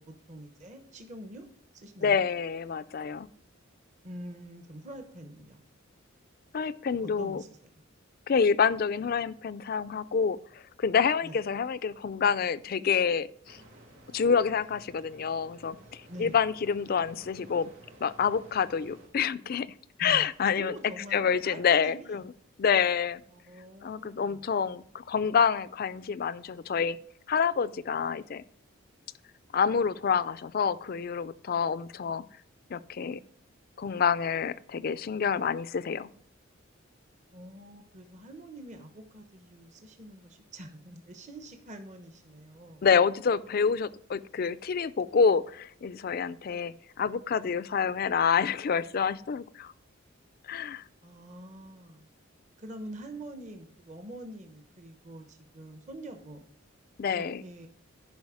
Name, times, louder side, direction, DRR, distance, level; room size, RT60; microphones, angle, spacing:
voice 1, 0.0-1.5 1.7-2.2 4.0-5.6 7.0-7.8 11.2-11.4 16.1-16.4 20.0-20.3 20.6-22.2 23.3-24.5 37.3-42.9 50.6-52.1 52.6-56.4 57.1-57.7, right 1 dB, 35° right, 5 dB, 0.9 m, -45 dB
voice 2, 2.0-3.3 6.5-7.4 8.3-10.4 10.8-13.6 14.1-17.7 18.0-19.7 20.0-20.8 21.1-22.3 22.6-23.2 23.8-27.0 27.3-28.4 29.5-32.2 32.7-33.2 33.8-36.1 42.8-49.7 50.5-50.8 57.0-57.4, left 6 dB, 45° left, 17 dB, 0.4 m, -27 dB
sound 1, 13.5-19.1, right 1 dB, 70° right, 2.5 m, -54 dB
10.5 x 5.1 x 4.8 m, 0.62 s
head